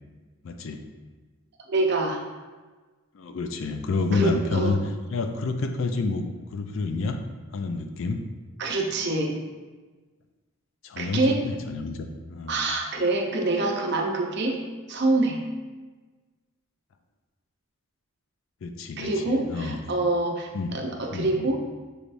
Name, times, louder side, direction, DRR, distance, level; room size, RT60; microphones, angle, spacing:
voice 1, 0.4-0.8 3.1-4.8 5.1-6.3 6.5-7.2 7.5-8.2 10.8-12.6 18.6-19.8 20.5-20.7 21.1-21.5, left 3 dB, 65° left, 6 dB, 0.4 m, -29 dB
voice 2, 1.7-2.2 4.1-4.8 8.6-9.4 11.0-11.4 12.5-14.6 14.9-15.4 19.0-21.6, right 2 dB, 50° right, 1 dB, 0.6 m, -25 dB
6.3 x 3.3 x 2.5 m, 1.3 s
head